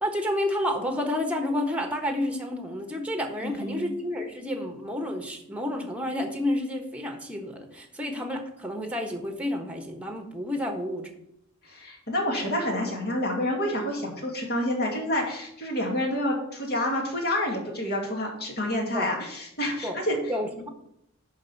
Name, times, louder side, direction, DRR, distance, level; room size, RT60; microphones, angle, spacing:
voice 1, 0.0-11.1 18.9-19.1 19.8-20.0 20.3-20.7, left 1 dB, 5° right, 5 dB, 1.2 m, -30 dB
voice 2, 3.4-3.9 11.6-20.2, left 1 dB, 50° left, 0 dB, 2.4 m, -28 dB
11.0 x 3.7 x 7.2 m, 0.77 s
head